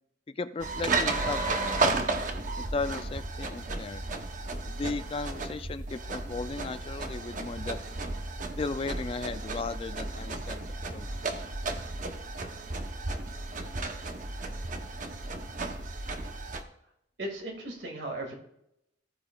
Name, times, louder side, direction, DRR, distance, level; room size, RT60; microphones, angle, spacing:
voice 1, 0.4-1.9 2.6-4.0 4.7-7.8 8.6-10.6 10.9-11.1, left 3 dB, 30° left, 12 dB, 0.3 m, -35 dB
sound 1, 0.6-16.6, right 3 dB, 45° right, 0.8 m, -33 dB
voice 2, 17.2-18.4, right 1 dB, 75° right, 1 dB, 2.1 m, -36 dB
15.0 x 8.7 x 2.3 m, 0.80 s
head